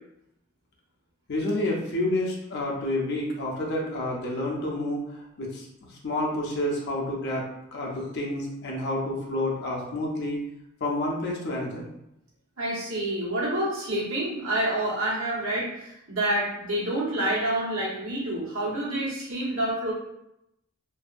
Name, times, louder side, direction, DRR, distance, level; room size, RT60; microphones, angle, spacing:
voice 1, 1.3-10.4 10.8-11.9, left 1 dB, 55° left, -2 dB, 0.5 m, -29 dB
voice 2, 12.6-19.9, right 1 dB, 80° right, -7 dB, 1.1 m, -28 dB
2.6 x 2.3 x 2.4 m, 0.82 s
head